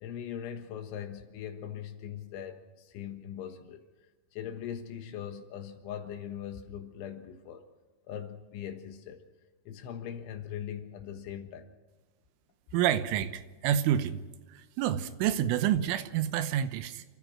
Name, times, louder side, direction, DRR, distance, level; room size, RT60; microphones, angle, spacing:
voice 1, 0.0-3.8 4.3-7.6 8.1-9.3 9.7-11.7, left 9 dB, 75° left, 7 dB, 3.8 m, -40 dB
voice 2, 12.7-14.2 14.5-17.0, right 10 dB, 85° right, 11 dB, 3.4 m, -28 dB
29.5 x 14.5 x 6.2 m, 1.3 s
omnidirectional pair, 5.7 m